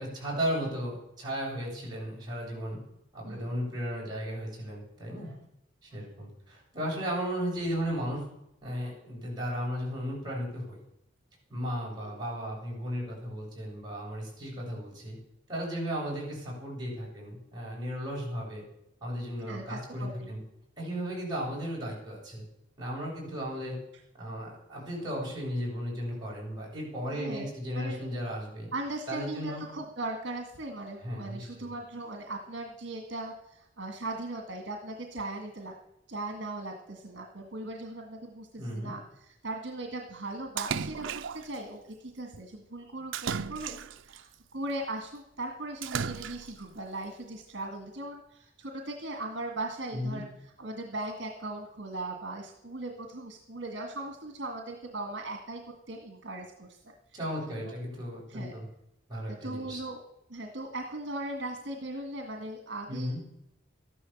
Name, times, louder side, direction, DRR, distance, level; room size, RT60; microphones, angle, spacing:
voice 1, 0.0-2.8 3.1-5.3 5.8-8.2 8.6-10.8 11.5-15.2 15.5-18.6 19.0-20.4 20.8-22.4 22.8-23.8 24.2-28.7 29.1-29.6 31.0-31.7 38.6-38.9 49.9-50.2 57.1-58.7 59.1-59.8 62.9-63.2, equal, 20° right, -5 dB, 7.8 m, -35 dB
voice 2, 19.4-20.4 27.1-28.1 28.7-35.7 36.1-56.8 57.6-57.7 58.3-58.6 59.3-60.0 60.3-63.2, right 2 dB, 65° right, 3 dB, 1.9 m, -39 dB
Splash splatter, 40.6-41.6 43.1-44.2 45.8-46.6, right 7 dB, 85° right, 0.6 m, -35 dB
13.5 x 11.5 x 7.3 m, 0.82 s
head